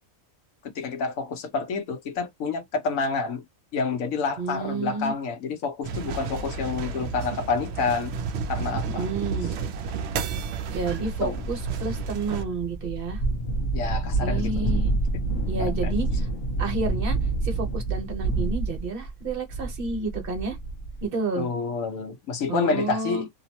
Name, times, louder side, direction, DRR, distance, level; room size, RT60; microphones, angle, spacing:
voice 1, 0.7-3.5 3.7-8.1 8.5-9.0 11.2-11.4 13.7-14.7 15.1-15.2 15.6-15.9 21.4-23.3, left 4 dB, 75° left, 1.2 m, -28 dB
voice 2, 4.4-5.1 8.9-9.5 10.7-13.2 14.2-14.9 15.5-16.3 16.6-17.2 17.4-20.6 21.0-21.5 22.5-23.3, right 4 dB, 45° right, 1.0 m, -30 dB
sound 1, 5.8-12.4, right 5 dB, 65° right, 0.7 m, -32 dB
sound 2, 10.5-21.1, right 2 dB, 50° left, 1.0 m, -28 dB
2.9 x 2.0 x 2.8 m
omnidirectional pair, 1.4 m